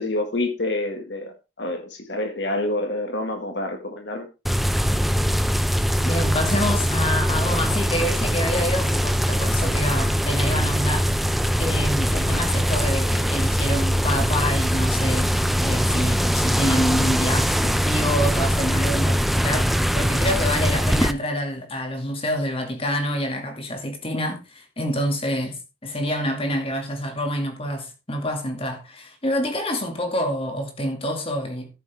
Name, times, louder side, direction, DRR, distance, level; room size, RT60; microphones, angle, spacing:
voice 1, 0.0-4.3, left 2 dB, 55° left, 1.9 m, -27 dB
sound 1, 4.4-21.1, equal, ahead, 0.4 m, -22 dB
voice 2, 6.0-11.1 11.6-15.3 15.6-31.7, equal, 30° left, 2.3 m, -27 dB
14.0 x 7.4 x 3.5 m
head